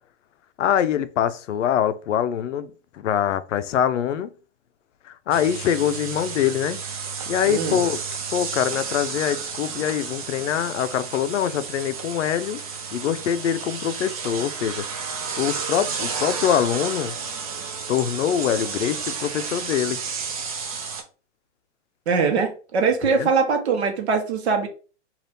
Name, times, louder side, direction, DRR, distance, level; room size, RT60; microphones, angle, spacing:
voice 1, 0.6-4.3 5.1-6.8 7.3-8.0 8.3-12.6 12.9-17.1 17.9-20.0 23.2-23.3, left 9 dB, 90° left, 0.5 m, -24 dB
sound 1, 5.3-21.0, right 5 dB, 30° right, 0.4 m, -32 dB
voice 2, 7.5-7.8 22.1-24.7, right 5 dB, 65° right, 0.9 m, -22 dB
2.6 x 2.4 x 3.3 m
hypercardioid pair, 155°, 36 cm